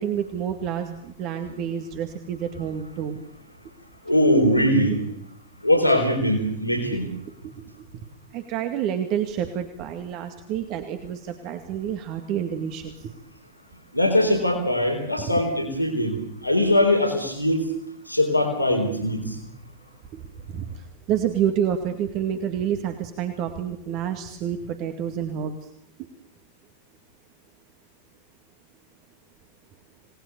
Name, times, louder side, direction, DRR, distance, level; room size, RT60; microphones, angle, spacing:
voice 1, 0.0-3.2 7.4-7.5 7.9-8.1 8.3-13.1 15.3-15.4 20.1-20.2 20.5-25.6, right 9 dB, 40° right, 6 dB, 2.2 m, -28 dB
voice 2, 4.1-5.0 5.6-7.1 13.9-17.7 18.1-19.4, left 1 dB, 90° left, 2 dB, 4.0 m, -21 dB
28.5 x 19.5 x 7.0 m, 0.73 s
figure-of-eight pair, 90°, 0 cm